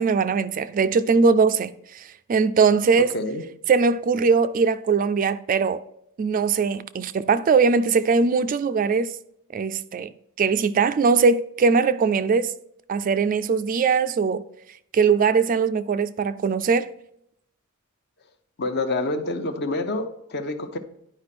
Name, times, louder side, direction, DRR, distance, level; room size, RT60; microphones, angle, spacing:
voice 1, 0.0-2.0 2.3-3.1 3.7-5.8 6.2-9.1 9.5-10.1 10.4-12.5 12.9-14.4 14.9-16.9, right 5 dB, 40° right, 0.3 m, -20 dB
voice 2, 18.6-20.8, left 2 dB, 50° left, 0.8 m, -27 dB
10.5 x 4.9 x 4.2 m
head